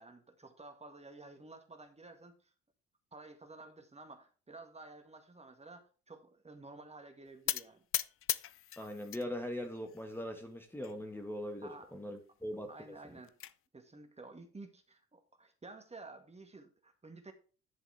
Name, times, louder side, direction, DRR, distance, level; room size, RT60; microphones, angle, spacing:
voice 1, 0.0-2.5 3.1-7.9 11.6-11.9 12.7-13.4 13.7-17.3, right 3 dB, 20° right, 5 dB, 1.9 m, -52 dB
sound 1, 7.5-9.3 9.6-10.3 10.8-10.9 11.2-11.3 11.7-11.8 12.9-13.5, left 12 dB, 45° left, 0.6 m, -38 dB
voice 2, 8.8-13.2, left 1 dB, 5° left, 4 dB, 1.7 m, -41 dB
11.0 x 6.9 x 3.5 m, 0.37 s
hypercardioid pair, 55°, 32 cm